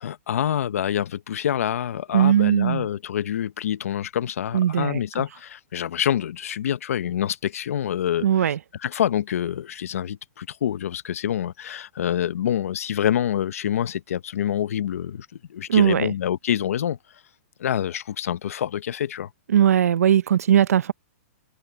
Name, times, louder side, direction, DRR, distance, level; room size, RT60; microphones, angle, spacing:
voice 1, 0.0-8.5 8.8-17.0 17.6-19.3, left 10 dB, 70° left, 0.8 m, -26 dB
voice 2, 2.1-2.9 4.5-5.0 8.2-8.6 15.7-16.1 19.5-20.9, right 10 dB, 85° right, 0.7 m, -19 dB
hypercardioid pair, 165°, 8 cm